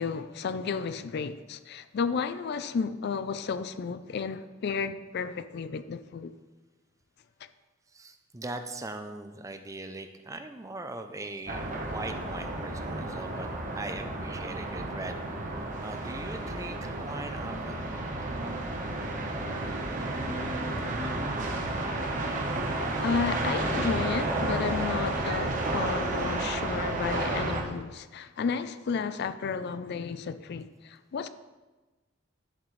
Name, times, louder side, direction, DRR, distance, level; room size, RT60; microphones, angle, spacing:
voice 1, 0.0-6.3 22.7-31.3, left 5 dB, 55° left, 0.4 m, -32 dB
voice 2, 7.9-13.5 13.7-15.2 15.8-17.8, right 2 dB, 15° right, 0.5 m, -40 dB
sound 1, 11.5-27.6, right 2 dB, 40° right, 1.1 m, -32 dB
11.0 x 7.2 x 3.2 m
head